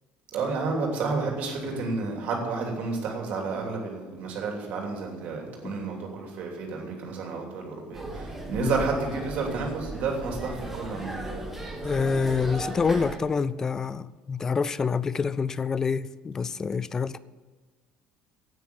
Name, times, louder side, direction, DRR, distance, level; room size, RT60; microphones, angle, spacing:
voice 1, 0.3-11.2, right 4 dB, 50° right, 3.0 m, -31 dB
sound 1, 7.9-13.2, right 1 dB, 5° right, 1.3 m, -36 dB
voice 2, 11.8-17.2, left 5 dB, 15° left, 0.3 m, -27 dB
9.1 x 8.9 x 9.6 m
cardioid pair, 160°, 3 cm